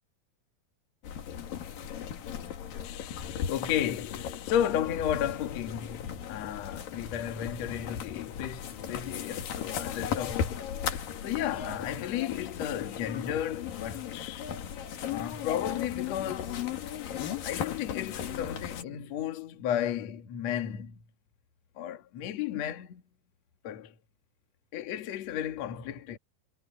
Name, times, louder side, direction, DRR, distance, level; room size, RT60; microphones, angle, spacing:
sound 1, 1.0-18.8, left 8 dB, 55° left, 3.0 m, -37 dB
voice 1, 2.8-10.8 11.2-14.5 15.1-16.8 17.4-21.0 21.8-23.0 23.6-23.9 24.7-26.2, left 10 dB, 90° left, 1.5 m, -33 dB
omnidirectional pair, 5.8 m